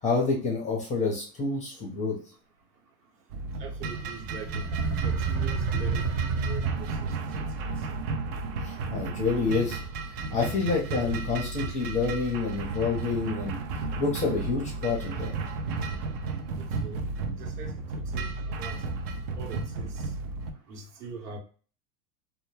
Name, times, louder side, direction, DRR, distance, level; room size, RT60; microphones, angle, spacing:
voice 1, 0.0-2.2 8.6-9.8 10.1-13.6 14.0-15.3, left 4 dB, 15° left, 0.6 m, -28 dB
sound 1, 3.3-20.5, right 3 dB, 40° right, 0.5 m, -34 dB
voice 2, 3.6-4.7 5.0-6.1 6.4-7.0 16.6-17.0 17.4-18.8 19.3-20.0 20.7-21.4, right 5 dB, 75° right, 1.1 m, -42 dB
sound 2, 4.5-7.3, right 5 dB, 55° right, 0.9 m, -29 dB
2.1 x 2.1 x 3.2 m
hypercardioid pair, 115°, 47 cm